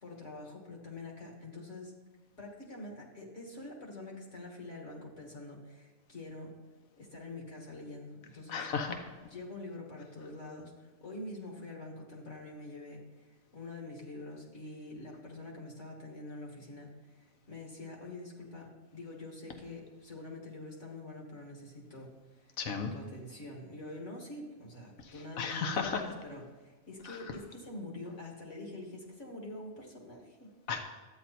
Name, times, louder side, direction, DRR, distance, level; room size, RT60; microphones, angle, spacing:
voice 1, 0.0-1.9 2.4-6.5 7.0-8.7 9.2-13.0 13.3-16.9 17.1-22.5 22.9-30.5, left 2 dB, 60° left, -1 dB, 2.5 m, -45 dB
voice 2, 8.5-9.0 22.6-22.9 25.4-26.0 27.1-27.2 30.7-30.8, left 6 dB, 80° left, 5 dB, 1.4 m, -33 dB
12.5 x 9.3 x 4.3 m, 1.3 s
omnidirectional pair, 1.4 m